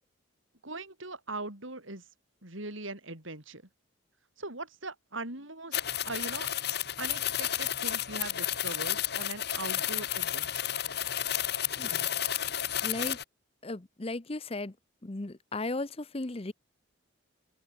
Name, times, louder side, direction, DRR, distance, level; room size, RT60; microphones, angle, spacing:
voice 1, 0.6-2.0 2.4-3.6 4.4-6.5 7.0-10.7, right 2 dB, 70° right, 6.4 m, -40 dB
sound 1, 5.7-13.2, left 11 dB, 50° left, 1.4 m, -32 dB
voice 2, 11.8-12.1 12.8-13.2 13.6-14.7 15.0-16.5, left 2 dB, 30° left, 0.8 m, -36 dB
open air
head